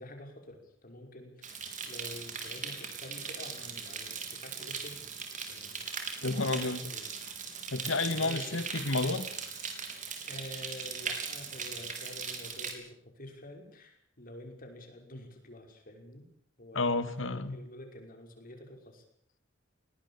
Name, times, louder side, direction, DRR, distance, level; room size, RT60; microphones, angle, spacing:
voice 1, 0.0-5.1 5.5-7.1 8.0-8.6 10.2-16.3 16.6-19.0, left 1 dB, 45° left, 4 dB, 5.7 m, -48 dB
sound 1, 1.4-12.7, right 6 dB, 40° right, 4.0 m, -39 dB
voice 2, 6.2-6.9 7.7-9.3 16.7-17.6, left 3 dB, 75° left, 12 dB, 2.1 m, -30 dB
21.5 x 18.5 x 8.6 m, 0.64 s
head